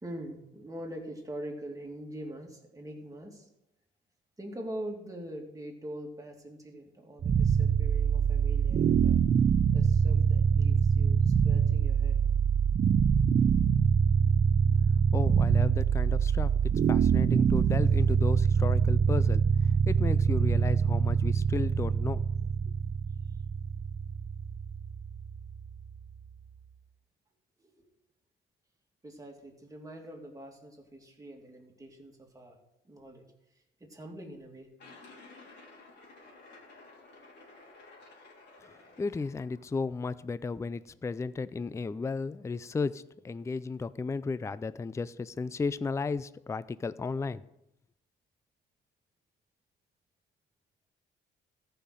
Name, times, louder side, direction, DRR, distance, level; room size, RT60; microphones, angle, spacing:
voice 1, 0.0-3.5 4.4-9.2 9.7-12.2 23.3-23.4 27.6-27.9 29.0-32.6 32.8-33.3 33.8-34.7, right 1 dB, 15° right, 1 dB, 2.5 m, -43 dB
sound 1, 7.2-26.3, right 7 dB, 40° right, 0.6 m, -25 dB
voice 2, 15.1-22.3 38.6-47.4, left 4 dB, 15° left, 17 dB, 0.4 m, -34 dB
sound 2, 34.8-39.8, left 3 dB, 60° left, 3.4 m, -53 dB
14.0 x 5.7 x 6.3 m, 0.86 s
cardioid pair, 90°, 20 cm